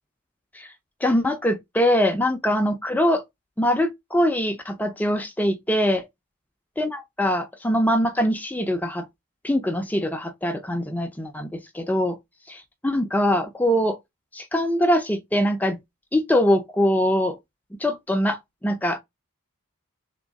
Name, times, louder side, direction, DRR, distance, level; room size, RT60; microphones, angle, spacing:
voice 1, 1.0-3.2 3.6-6.1 6.8-9.1 9.4-12.2 12.5-14.0 14.3-15.8 16.1-17.4 17.8-19.0, equal, 5° left, 0.4 m, -23 dB
3.6 x 2.9 x 4.0 m
head